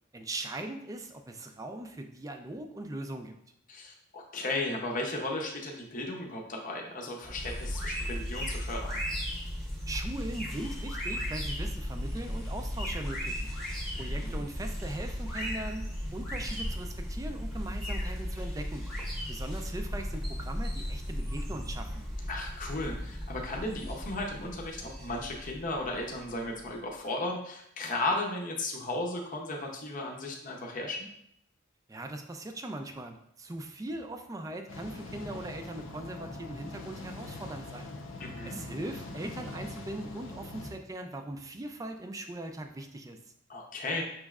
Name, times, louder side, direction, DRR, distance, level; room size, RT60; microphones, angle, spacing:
voice 1, 0.1-3.3 9.9-13.5 14.0-18.8 19.3-22.0 31.9-37.9 38.4-43.2, right 1 dB, 15° right, 5 dB, 0.4 m, -40 dB
voice 2, 3.7-9.0 13.9-14.4 22.3-31.1 38.2-38.6 43.5-44.0, left 2 dB, 40° left, 0 dB, 0.6 m, -35 dB
sound 1, 7.2-26.7, equal, ahead, 1.0 m, -36 dB
sound 2, 34.7-40.7, left 2 dB, 80° left, 0.6 m, -43 dB
6.3 x 3.1 x 2.3 m, 0.73 s
head